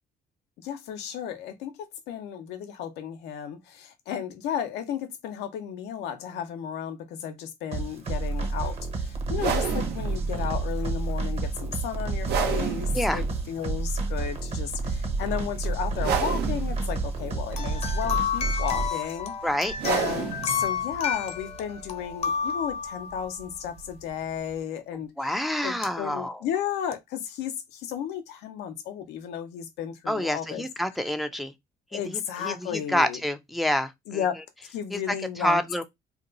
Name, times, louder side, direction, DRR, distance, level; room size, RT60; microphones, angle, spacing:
voice 1, 0.6-1.8 2.1-19.3 19.8-25.3 25.6-30.6 31.9-33.2 34.1-34.4 34.7-35.6, left 9 dB, 85° left, 0.7 m, -33 dB
sound 1, 7.7-18.9, right 3 dB, 35° right, 1.0 m, -29 dB
sound 2, 9.3-24.6, right 7 dB, 75° right, 0.9 m, -34 dB
sound 3, 17.5-23.5 25.8-25.9 26.9-27.0, left 7 dB, 40° left, 0.7 m, -31 dB
voice 2, 19.4-19.7 25.2-26.4 30.1-31.5 31.9-34.2 34.9-35.0 35.4-35.8, left 1 dB, ahead, 0.5 m, -28 dB
2.8 x 2.3 x 3.8 m
cardioid pair, 110°, 17 cm